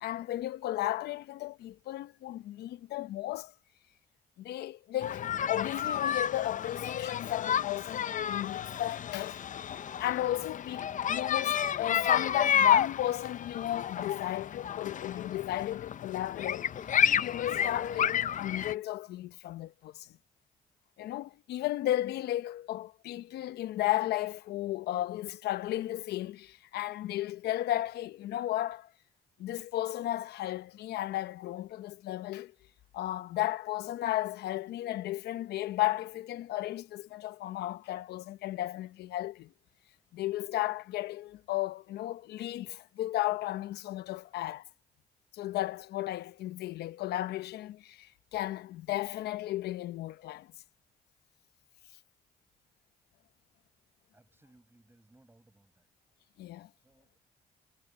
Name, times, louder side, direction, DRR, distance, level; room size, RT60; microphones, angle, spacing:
voice 1, 0.0-3.5 4.4-16.9 17.1-20.1 21.0-28.9 29.4-32.5 32.9-39.5 40.1-44.6 45.3-50.5 56.4-56.7, left 14 dB, 85° left, 0.9 m, -34 dB
sound 1, 5.0-18.7, left 9 dB, 50° left, 0.7 m, -31 dB
voice 2, 54.1-55.9 56.8-57.2, right 2 dB, 15° right, 5.9 m, -63 dB
supercardioid pair, 70°, 16 cm